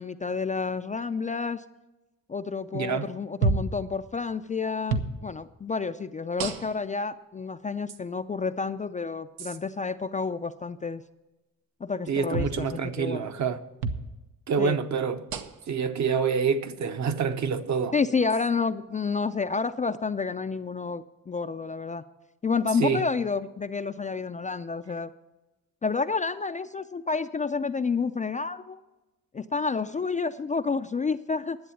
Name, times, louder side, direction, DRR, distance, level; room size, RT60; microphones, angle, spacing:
voice 1, 0.0-1.6 2.3-11.0 11.8-12.7 13.0-13.3 14.6-14.8 17.9-22.0 22.4-25.1 25.8-28.8 29.3-31.6, left 4 dB, 20° left, 0.4 m, -29 dB
voice 2, 2.7-3.1 12.1-13.6 14.5-15.3 15.7-17.9 22.8-23.0, right 6 dB, 50° right, 0.9 m, -27 dB
sound 1, 3.4-3.8 4.9-5.1 6.4-6.9 7.9-8.0 9.4-9.6 12.3-12.6 13.8-14.1 15.3-15.7 16.8-16.9 18.3-18.5, right 3 dB, 85° right, 1.0 m, -29 dB
11.0 x 7.8 x 7.1 m
cardioid pair, 80°, 36 cm